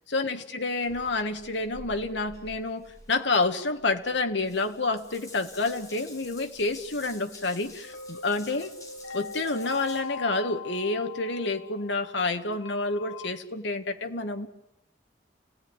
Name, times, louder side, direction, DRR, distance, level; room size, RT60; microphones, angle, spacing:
voice 1, 0.1-8.7 9.1-14.5, left 3 dB, 70° left, 6 dB, 1.5 m, -29 dB
Water tap faucet / Bathtub (filling or washing) / Drip, 0.8-10.0, left 1 dB, 15° left, 5.1 m, -50 dB
sound 1, 7.8-13.3, left 5 dB, 90° left, 2.5 m, -41 dB
29.0 x 17.0 x 9.7 m, 0.97 s
head